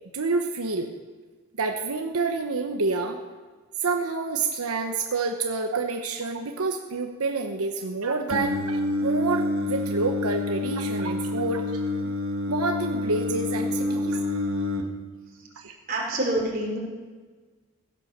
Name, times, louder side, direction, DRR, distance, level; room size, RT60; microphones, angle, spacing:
voice 1, 0.1-0.9 1.6-3.2 3.8-11.6 12.5-14.2 15.6-15.7, right 3 dB, 85° right, 4 dB, 1.0 m, -28 dB
Singing, 8.3-14.8, left 2 dB, 60° right, 1.5 m, -28 dB
voice 2, 15.9-16.8, right 1 dB, 40° right, -2 dB, 3.6 m, -27 dB
16.5 x 8.3 x 6.7 m, 1.4 s
head